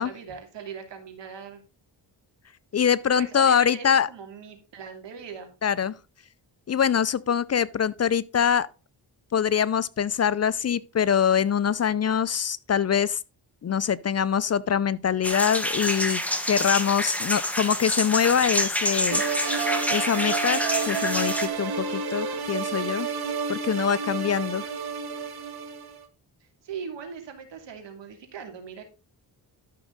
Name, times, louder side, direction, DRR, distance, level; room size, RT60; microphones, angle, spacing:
voice 1, 0.0-1.6 3.2-5.5 26.4-28.8, right 6 dB, 90° right, 2.7 m, -40 dB
voice 2, 2.7-4.1 5.6-6.0 6.7-8.7 9.3-13.2 13.6-16.2 16.5-19.2 19.9-20.6 20.9-23.1 23.5-24.7, left 8 dB, 40° left, 0.5 m, -24 dB
sound 1, 15.2-21.5, left 1 dB, 5° left, 1.4 m, -27 dB
sound 2, 19.1-26.0, right 5 dB, 65° right, 1.7 m, -30 dB
12.5 x 6.2 x 3.9 m
cardioid pair, 105°, 42 cm